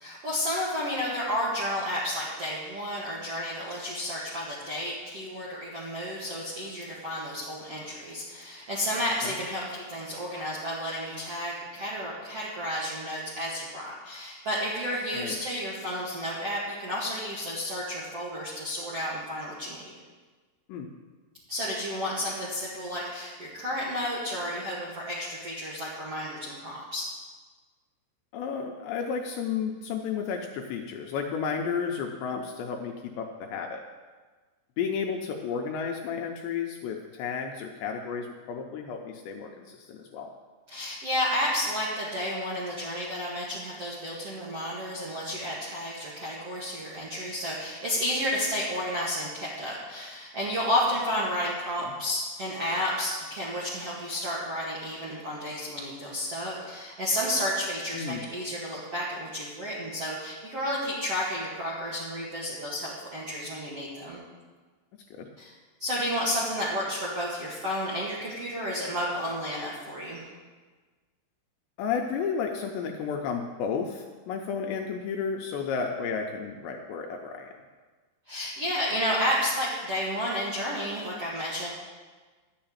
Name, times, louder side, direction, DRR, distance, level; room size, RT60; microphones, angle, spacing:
voice 1, 0.0-19.9 21.5-27.0 40.7-64.2 65.4-65.5 65.8-70.2 78.3-81.7, equal, 60° right, -6 dB, 1.6 m, -31 dB
voice 2, 28.3-33.8 34.8-40.3 51.8-51.9 57.9-58.3 65.1-65.3 71.8-77.5, left 6 dB, 80° left, 2 dB, 2.6 m, -32 dB
12.0 x 6.7 x 8.9 m, 1.4 s
omnidirectional pair, 5.7 m